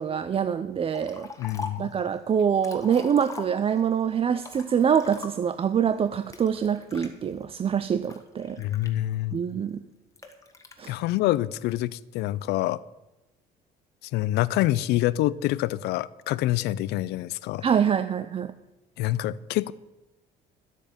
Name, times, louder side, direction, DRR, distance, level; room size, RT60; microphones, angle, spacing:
voice 1, 0.0-1.3 1.8-8.6 9.3-9.8 10.8-10.9 17.6-18.5, right 8 dB, 35° right, 0.5 m, -25 dB
Liquid, 0.9-1.9 2.4-3.9 4.4-5.6 6.3-7.1 7.7-9.4 10.2-10.9, left 4 dB, 20° left, 1.5 m, -42 dB
voice 2, 1.4-1.9 8.6-9.4 10.9-12.8 14.1-17.6 19.0-19.7, left 15 dB, 85° left, 0.5 m, -26 dB
11.0 x 8.3 x 7.2 m
cardioid pair, 110°, 17 cm